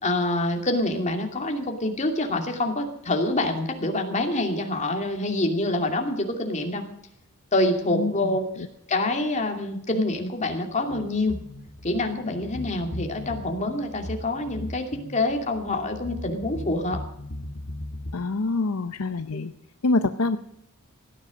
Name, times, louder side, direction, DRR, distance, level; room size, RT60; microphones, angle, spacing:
voice 1, 0.0-6.8 7.5-8.5 8.9-11.4 11.8-17.0 19.3-19.4, left 2 dB, 30° left, 3 dB, 2.6 m, -26 dB
voice 2, 7.9-8.3 8.6-8.7 18.1-19.5 19.8-20.4, left 3 dB, 70° left, 10 dB, 0.7 m, -25 dB
sound 1, 10.8-18.1, left 1 dB, 50° left, 1.5 m, -38 dB
17.0 x 10.5 x 6.3 m, 0.74 s
head